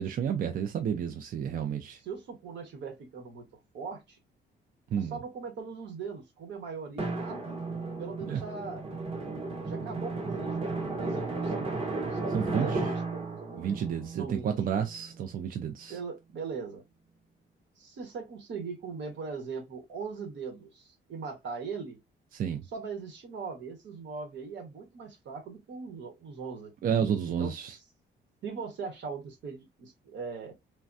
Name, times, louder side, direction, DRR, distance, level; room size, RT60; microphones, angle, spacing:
voice 1, 0.0-2.0 4.9-5.1 8.2-8.4 12.3-12.8 13.6-16.0 22.3-22.6 26.8-27.8, right 8 dB, 50° right, 0.4 m, -31 dB
voice 2, 1.7-3.5 3.7-4.2 4.9-7.6 8.0-8.8 9.6-13.8 14.1-14.5 15.9-16.8 17.8-22.0 22.6-26.7 27.3-27.8 28.4-30.5, right 5 dB, 70° right, 1.1 m, -40 dB
Drum, 7.0-15.3, right 3 dB, 30° right, 0.9 m, -34 dB
3.3 x 2.2 x 2.5 m
cardioid pair, 145°, 20 cm